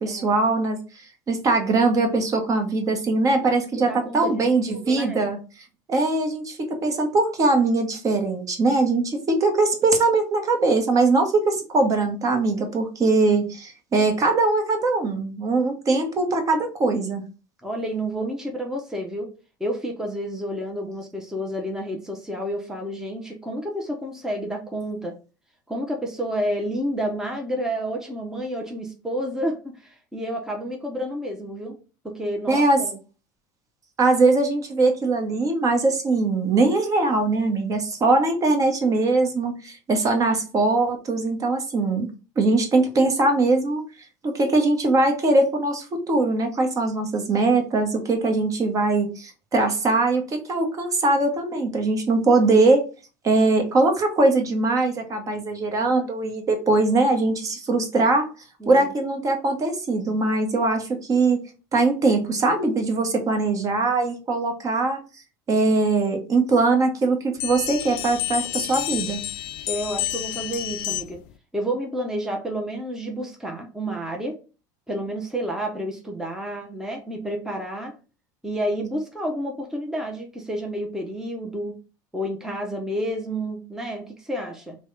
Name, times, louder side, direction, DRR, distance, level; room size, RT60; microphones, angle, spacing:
voice 1, 0.0-5.4 5.9-17.2 32.5-32.8 34.0-42.1 42.4-43.8 44.2-52.8 53.2-58.3 58.6-61.4 61.7-65.0 65.5-69.2, right 3 dB, 35° right, 4 dB, 1.1 m, -21 dB
voice 2, 3.8-4.3 4.7-5.2 17.6-19.3 19.6-25.2 25.7-31.7 32.0-33.0 58.6-58.9 69.7-71.2 71.5-74.4 74.9-77.9 78.4-81.8 82.1-84.8, equal, 5° right, 2 dB, 0.8 m, -30 dB
sound 1, 67.4-71.3, left 14 dB, 65° left, 0.4 m, -30 dB
3.3 x 2.3 x 3.9 m, 0.33 s
hypercardioid pair, 85°, 10 cm